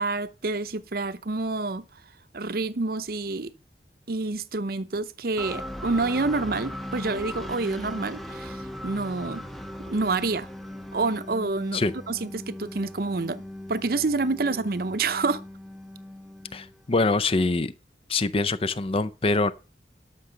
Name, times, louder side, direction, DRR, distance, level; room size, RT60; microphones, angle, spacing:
voice 1, 0.0-1.9 2.3-3.5 4.1-9.4 9.8-10.5 10.9-13.4 13.7-15.4, right 3 dB, 55° right, 0.7 m, -28 dB
sound 1, 5.4-17.1, left 1 dB, ahead, 0.8 m, -39 dB
voice 2, 16.5-17.7 18.1-19.5, left 3 dB, 30° left, 0.6 m, -24 dB
12.0 x 6.1 x 5.6 m
head